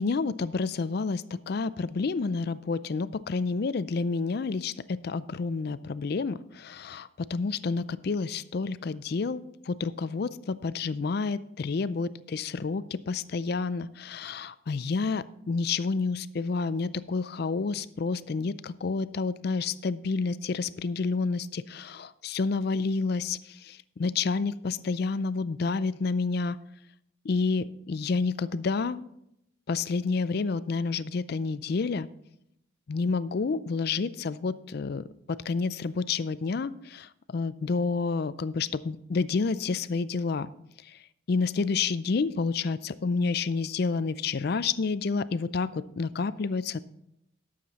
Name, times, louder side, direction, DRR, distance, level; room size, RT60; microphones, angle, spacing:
voice 1, 0.0-26.6 27.2-29.0 29.7-32.1 32.9-40.5 41.3-46.8, left 4 dB, 50° left, 16 dB, 0.4 m, -29 dB
12.0 x 7.5 x 4.1 m, 0.77 s
head